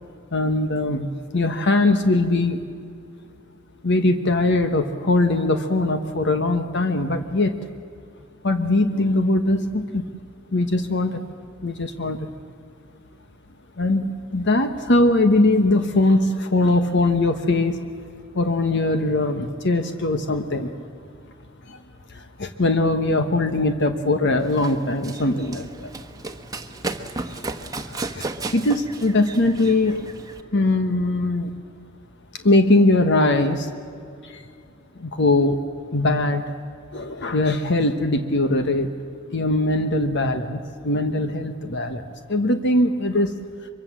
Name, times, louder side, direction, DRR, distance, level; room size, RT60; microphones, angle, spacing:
voice 1, 0.3-1.1 1.3-2.6 3.8-7.5 8.4-10.0 10.5-11.2 11.6-12.3 13.8-17.8 18.3-20.7 21.7-21.8 22.1-25.9 27.0-27.1 27.4-27.5 27.9-30.1 30.5-31.5 32.3-33.7 34.2-34.4 35.0-35.6 35.9-36.4 36.9-38.9 39.3-43.3, left 2 dB, 60° left, 8 dB, 1.2 m, -21 dB
Run, 24.4-30.4, right 3 dB, 20° right, 1.2 m, -34 dB
24.5 x 23.5 x 7.5 m, 2.4 s
head